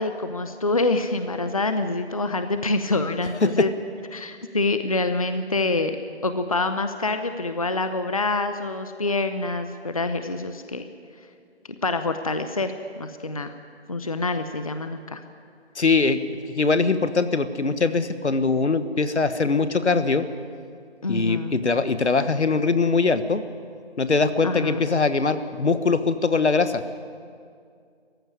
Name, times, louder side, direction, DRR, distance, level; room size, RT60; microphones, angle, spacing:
voice 1, 0.0-3.7 4.1-6.0 6.2-10.8 11.8-13.5 13.9-15.2 21.0-21.6 24.4-24.9, left 2 dB, 35° left, 9 dB, 0.7 m, -26 dB
voice 2, 15.7-16.2 16.5-20.2 21.1-23.4 24.0-26.8, left 4 dB, 80° left, 11 dB, 1.5 m, -22 dB
18.0 x 15.0 x 9.7 m, 2.3 s
figure-of-eight pair, 170°, 33 cm